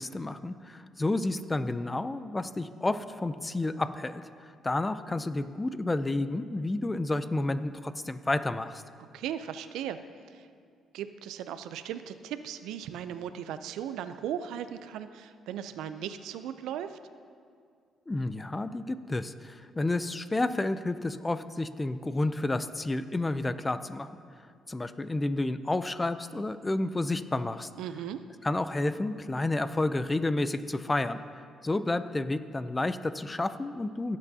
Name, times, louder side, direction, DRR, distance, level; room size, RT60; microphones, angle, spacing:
voice 1, 0.0-4.2 4.6-8.8 18.1-24.1 24.7-27.7 28.4-31.2 31.6-34.2, left 2 dB, 20° left, 12 dB, 0.4 m, -30 dB
voice 2, 9.1-10.0 10.3-10.5 10.9-17.0 27.8-28.2, right 9 dB, 90° right, 11 dB, 0.4 m, -37 dB
17.5 x 8.2 x 2.7 m, 2.2 s
cardioid pair, 90°, 0 cm